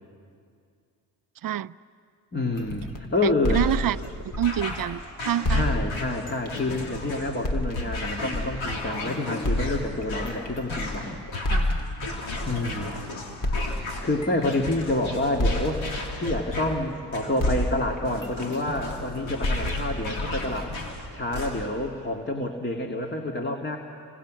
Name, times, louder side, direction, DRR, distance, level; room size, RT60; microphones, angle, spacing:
voice 1, 1.4-1.7 3.2-4.0 4.4-5.6 11.5-11.7, right 11 dB, 45° right, 17 dB, 0.6 m, -27 dB
voice 2, 2.3-3.6 5.5-11.2 12.5-13.1 14.0-23.8, left 2 dB, 20° left, 2 dB, 2.4 m, -28 dB
sound 1, 2.6-5.0 5.4-9.0 9.4-13.0 13.4-17.1 17.4-21.5, left 1 dB, 40° left, 2.9 m, -30 dB
sound 2, 3.5-21.9, left 2 dB, 70° left, 3.6 m, -35 dB
29.5 x 26.0 x 6.4 m, 2.3 s
hypercardioid pair, 45°, 48 cm